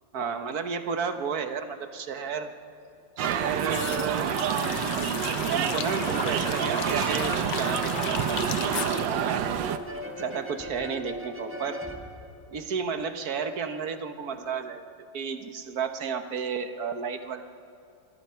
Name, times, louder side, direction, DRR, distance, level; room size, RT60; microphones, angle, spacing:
voice 1, 0.1-2.5 3.2-4.9 5.5-9.6 10.2-11.8 12.5-17.4, right 6 dB, 55° right, 8 dB, 1.6 m, -32 dB
sound 1, 3.2-10.3 10.5-10.6, left 10 dB, 75° left, 1.4 m, -36 dB
sound 2, 3.2-9.8, right 9 dB, 80° right, 1.5 m, -28 dB
sound 3, 7.2-13.0, equal, 10° right, 1.3 m, -40 dB
27.0 x 22.0 x 5.7 m, 2.6 s
omnidirectional pair, 2.0 m